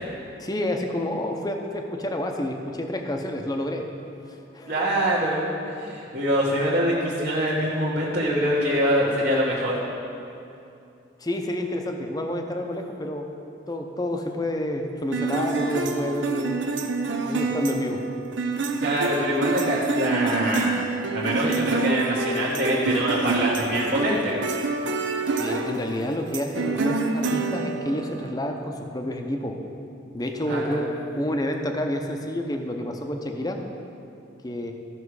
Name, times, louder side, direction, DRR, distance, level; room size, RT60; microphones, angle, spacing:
voice 1, 0.4-3.9 4.3-4.7 11.2-13.3 13.7-16.6 17.2-18.1 25.4-29.6 30.1-33.6 34.4-34.7, left 1 dB, 20° left, 4 dB, 0.7 m, -29 dB
voice 2, 4.7-9.8 18.8-20.8 21.1-24.4 30.5-30.8, equal, 50° right, -7 dB, 1.3 m, -24 dB
sound 1, 15.1-28.3, right 3 dB, 75° right, 0.7 m, -27 dB
14.5 x 6.1 x 4.8 m, 2.7 s
head